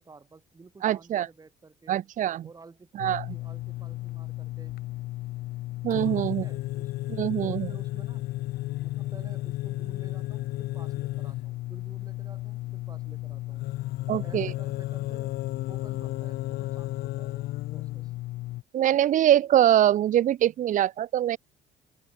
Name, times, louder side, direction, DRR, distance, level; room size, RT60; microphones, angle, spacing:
voice 1, 0.0-2.1 2.4-4.8 6.1-7.0 7.4-8.3 8.8-13.7 14.1-15.4 15.7-18.1, right 4 dB, 20° right, 3.6 m, -52 dB
voice 2, 0.8-1.3 1.9-2.5 3.0-3.2 5.8-6.4 7.1-7.7 14.1-14.5 18.7-21.4, right 11 dB, 50° right, 0.6 m, -23 dB
sound 1, 3.0-18.6, left 17 dB, 70° left, 0.4 m, -33 dB
open air
cardioid pair, 110°, 17 cm